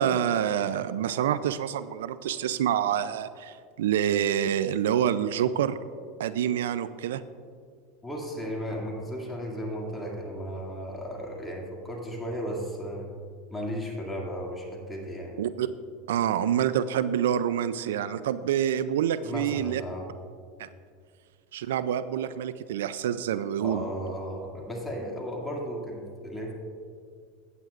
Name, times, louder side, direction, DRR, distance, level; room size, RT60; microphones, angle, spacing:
voice 1, 0.0-5.8 6.2-7.2 15.4-15.7 16.1-19.8 20.6-20.7 21.5-23.8, right 10 dB, 85° right, 14 dB, 0.3 m, -27 dB
voice 2, 8.0-13.1 13.5-15.4 19.2-20.1 23.6-26.5, equal, 10° left, -2 dB, 2.3 m, -35 dB
15.0 x 9.0 x 2.5 m, 2.1 s
supercardioid pair, 110°, 0 cm